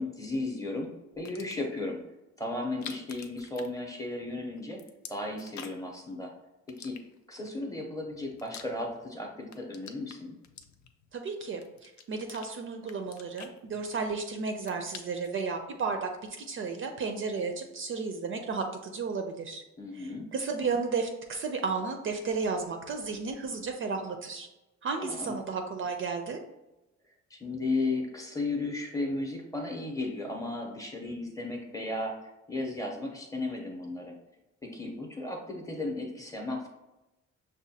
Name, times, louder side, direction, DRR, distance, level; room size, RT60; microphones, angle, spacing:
voice 1, 0.0-2.0 2.4-4.8 5.1-6.3 6.8-7.0 7.3-10.3 19.8-20.3 25.0-25.3 27.3-32.1 32.5-34.1 34.6-36.7, left 2 dB, 10° left, 0 dB, 0.6 m, -35 dB
sound 1, 1.1-1.8 2.6-4.3 4.6-6.0 6.7-7.5 8.0-9.1 9.4-11.1 11.6-12.5 12.8-14.2 14.5-15.4, left 7 dB, 75° left, 0.5 m, -47 dB
voice 2, 11.1-16.1 16.4-19.6 19.9-24.5 24.8-26.4, right 4 dB, 45° right, 5 dB, 0.4 m, -33 dB
6.1 x 2.2 x 2.7 m, 0.98 s
cardioid pair, 160°, 29 cm